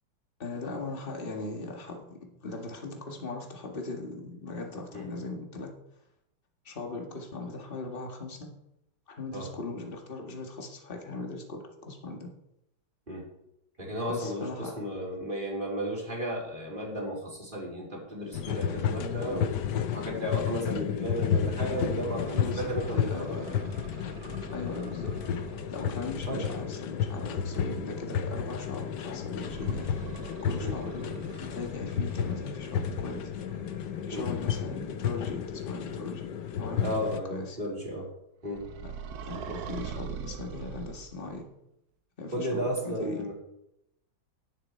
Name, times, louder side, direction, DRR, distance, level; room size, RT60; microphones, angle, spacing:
voice 1, 0.4-5.7 6.7-8.5 9.1-12.3 14.1-14.7 22.4-23.5 24.5-25.1 25.7-29.9 30.4-33.3 34.1-36.2 36.6-36.9 37.3-37.6 39.3-41.5 42.2-43.2, left 3 dB, 25° left, 2 dB, 1.9 m, -39 dB
voice 2, 13.8-19.6 19.9-23.3 26.3-26.7 30.6-30.8 34.1-34.3 36.8-38.1 38.4-38.6 42.3-43.3, equal, 25° right, -2 dB, 3.3 m, -34 dB
sound 1, 18.3-37.2, left 8 dB, 65° left, 1.2 m, -32 dB
sound 2, 22.2-26.3 29.4-35.7 38.5-41.4, right 6 dB, 60° right, 1.1 m, -45 dB
11.0 x 10.0 x 4.5 m, 0.82 s
omnidirectional pair, 2.3 m